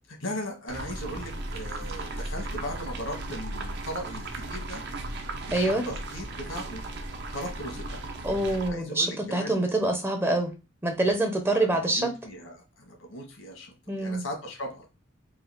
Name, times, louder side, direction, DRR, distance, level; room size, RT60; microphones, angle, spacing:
voice 1, 0.1-4.8 5.4-6.8 7.3-8.1 8.4-9.6 11.4-14.9, equal, 90° left, 2 dB, 1.6 m, -38 dB
sound 1, 0.7-8.7, right 2 dB, 55° right, 0.7 m, -36 dB
voice 2, 5.5-5.8 8.2-10.5 10.8-12.1 13.9-14.2, right 2 dB, 10° right, 4 dB, 0.6 m, -25 dB
4.0 x 2.5 x 4.2 m, 0.29 s
head